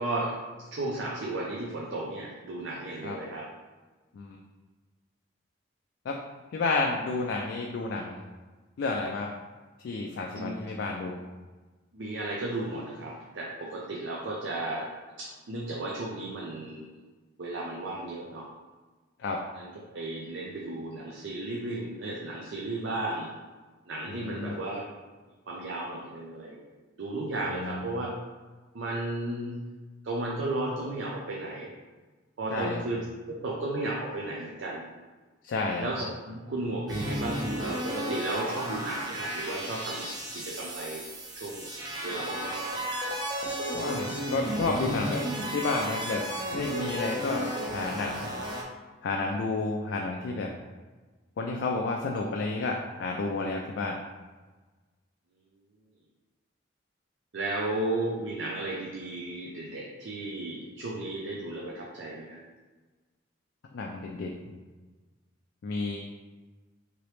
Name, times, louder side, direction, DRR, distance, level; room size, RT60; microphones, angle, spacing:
voice 1, 0.0-3.5 10.3-10.6 11.9-14.9 15.2-16.9 17.4-18.5 19.5-23.3 23.9-24.8 25.5-28.2 28.7-29.6 30.0-31.7 32.4-33.0 33.4-34.9 35.8-41.0 41.3-41.7 42.0-42.9 57.3-62.4, right 2 dB, 70° right, -3 dB, 0.5 m, -34 dB
voice 2, 6.5-8.2 8.8-9.3 9.8-11.2 19.2-19.4 24.1-24.5 27.5-27.8 32.5-32.8 35.4-35.9 43.7-45.3 45.5-48.3 49.0-50.5 51.4-54.0 63.7-64.3 65.6-66.1, left 3 dB, 65° left, 0 dB, 0.3 m, -31 dB
sound 1, 36.9-48.6, right 1 dB, 20° right, 0.5 m, -33 dB
3.0 x 2.9 x 3.1 m, 1.3 s
head